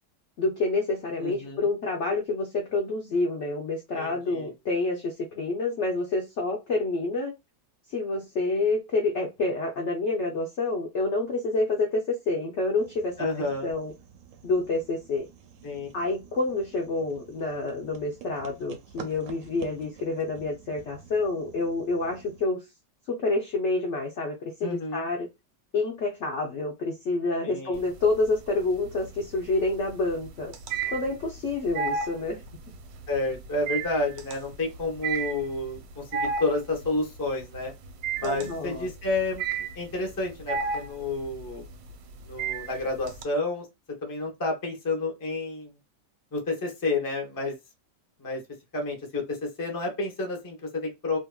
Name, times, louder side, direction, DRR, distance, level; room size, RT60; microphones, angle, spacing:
voice 1, 0.4-7.3 7.9-13.9 14.4-15.3 15.9-22.6 23.1-25.3 25.7-30.5 30.9-32.4 38.2-38.9, left 3 dB, 70° left, 0.7 m, -28 dB
voice 2, 1.2-1.7 3.9-4.5 13.2-13.7 15.6-15.9 24.6-25.1 27.4-27.8 33.1-37.7 38.2-41.6 42.2-43.7 44.0-45.7 46.3-47.6 48.2-48.4 48.7-51.2, left 2 dB, 25° left, 0.4 m, -30 dB
sound 1, 12.8-22.5, right 7 dB, 70° right, 0.8 m, -49 dB
sound 2, 27.7-28.4 28.7-43.2, right 5 dB, 85° right, 1.3 m, -33 dB
2.8 x 2.5 x 2.2 m
omnidirectional pair, 1.9 m